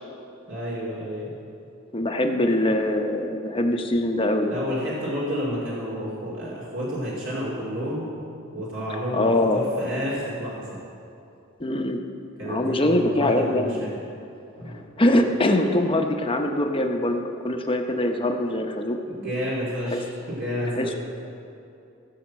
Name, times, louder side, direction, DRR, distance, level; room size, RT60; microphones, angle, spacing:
voice 1, 0.5-1.3 4.5-8.1 8.5-10.8 12.4-14.0 14.6-14.8 19.0-21.0, equal, 60° right, -7 dB, 2.7 m, -30 dB
voice 2, 1.9-4.6 9.1-9.6 11.6-12.0 12.4-13.8 15.0-19.0 19.9-20.0 20.7-20.9, left 1 dB, 25° left, 4 dB, 0.8 m, -23 dB
16.0 x 5.8 x 7.5 m, 2.6 s
head